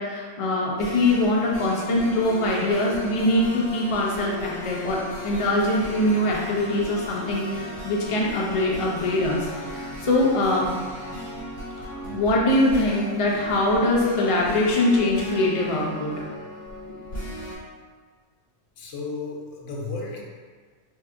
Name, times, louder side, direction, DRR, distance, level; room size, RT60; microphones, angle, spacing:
voice 1, 0.0-10.7 11.8-16.3 17.1-17.3, left 1 dB, 55° left, -3 dB, 0.3 m, -23 dB
sound 1, 0.8-17.6, left 1 dB, 40° left, 1.1 m, -37 dB
voice 2, 18.8-20.2, left 3 dB, 75° left, -1 dB, 0.9 m, -34 dB
3.4 x 2.7 x 2.4 m, 1.6 s
omnidirectional pair, 1.3 m